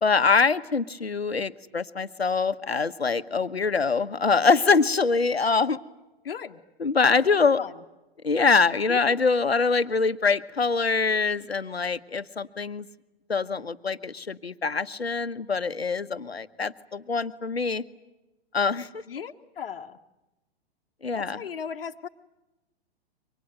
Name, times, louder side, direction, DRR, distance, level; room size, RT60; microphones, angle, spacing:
voice 1, 0.0-5.8 6.8-7.6 8.2-12.9 13.3-17.8 18.5-19.0 21.0-21.4, left 4 dB, 80° left, 11 dB, 1.2 m, -24 dB
voice 2, 6.2-6.6 7.0-7.2 7.6-7.7 8.9-9.2 19.1-20.0 21.1-22.1, left 7 dB, 60° left, 4 dB, 1.4 m, -36 dB
28.0 x 24.5 x 8.0 m, 1.0 s
figure-of-eight pair, 110°, 31 cm